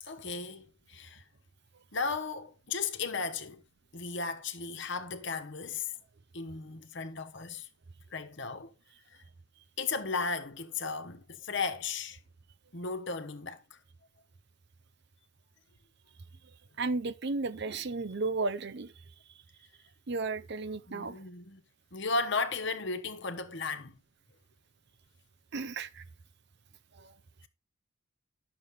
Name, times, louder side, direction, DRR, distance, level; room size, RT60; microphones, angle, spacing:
voice 1, 0.0-1.2 1.9-3.6 3.9-5.9 6.3-7.7 8.1-8.7 9.8-12.2 12.7-13.8 20.9-21.6 21.9-24.0, left 4 dB, 55° left, 1.3 m, -35 dB
voice 2, 16.8-18.9 20.1-21.2 25.5-26.0 27.0-27.1, right 3 dB, 55° right, 0.6 m, -34 dB
11.0 x 6.8 x 3.7 m
head